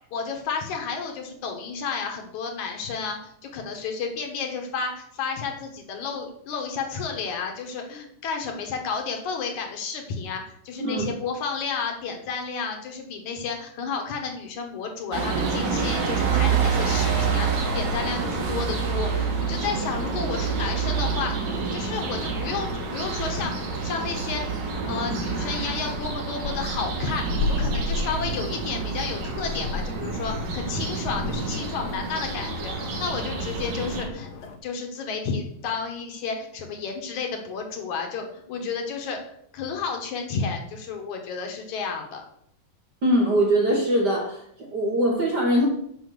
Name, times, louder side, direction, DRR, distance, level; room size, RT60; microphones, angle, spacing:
voice 1, 0.1-24.4 24.8-34.3 34.6-42.2, left 5 dB, 65° left, 3 dB, 2.5 m, -32 dB
voice 2, 10.8-11.1 43.0-45.7, right 1 dB, 60° right, 1 dB, 1.1 m, -22 dB
sound 1, 15.1-34.1, right 5 dB, 90° right, 3.4 m, -28 dB
sound 2, 22.0-34.6, left 4 dB, 80° left, 2.7 m, -36 dB
7.9 x 6.2 x 6.8 m, 0.70 s
omnidirectional pair, 4.0 m